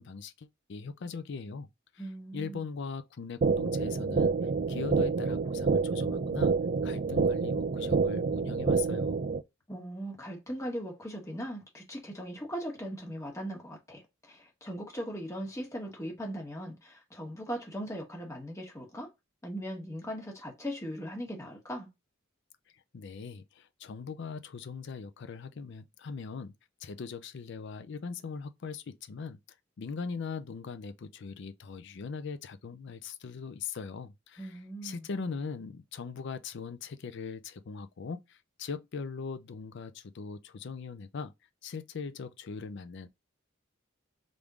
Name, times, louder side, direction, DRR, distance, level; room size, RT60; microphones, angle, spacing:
voice 1, 0.0-1.7 1.9-4.4 4.7-6.5 6.8-9.2 22.9-26.5 26.8-29.4 29.8-41.3 41.6-43.1, left 5 dB, 60° left, 0.4 m, -40 dB
voice 2, 2.0-2.7 9.7-19.1 19.4-21.9 34.4-35.1, equal, 15° left, 1.2 m, -39 dB
sound 1, 3.4-9.4, right 4 dB, 40° right, 0.4 m, -28 dB
3.5 x 2.6 x 4.6 m
head